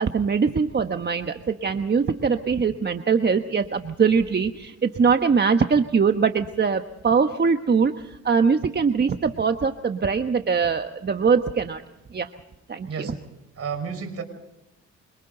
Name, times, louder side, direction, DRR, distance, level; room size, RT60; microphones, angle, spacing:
voice 1, 0.0-11.8 12.1-12.3 12.7-13.1, right 5 dB, 35° right, 7 dB, 1.3 m, -22 dB
voice 2, 12.8-13.2 13.6-14.2, right 6 dB, 50° right, 7 dB, 5.5 m, -31 dB
27.0 x 26.0 x 4.0 m, 0.92 s
cardioid pair, 90°, 30 cm